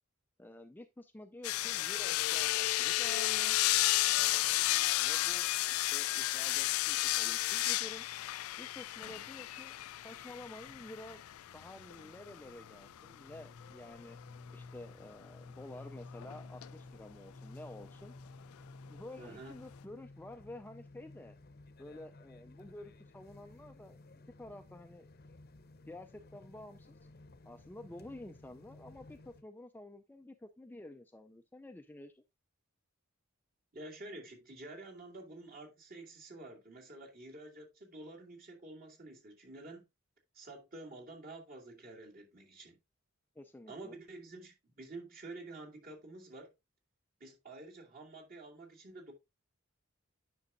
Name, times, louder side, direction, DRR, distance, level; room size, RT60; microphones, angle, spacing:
voice 1, 0.4-3.6 4.2-8.1 8.6-11.2 11.5-14.2 14.5-18.2 18.9-21.3 21.8-24.0 24.4-25.1 25.9-27.0 27.4-32.2 43.4-44.0, left 1 dB, 10° left, 0.4 m, -50 dB
sound 1, 1.4-12.8 16.1-16.7 17.8-17.9, left 17 dB, 90° left, 0.3 m, -32 dB
sound 2, 10.2-29.4, left 2 dB, 45° left, 0.8 m, -55 dB
voice 2, 19.2-19.6 33.7-39.8 40.3-42.8 43.7-46.5 47.2-49.1, right 2 dB, 45° right, 2.5 m, -49 dB
9.6 x 6.1 x 2.6 m
head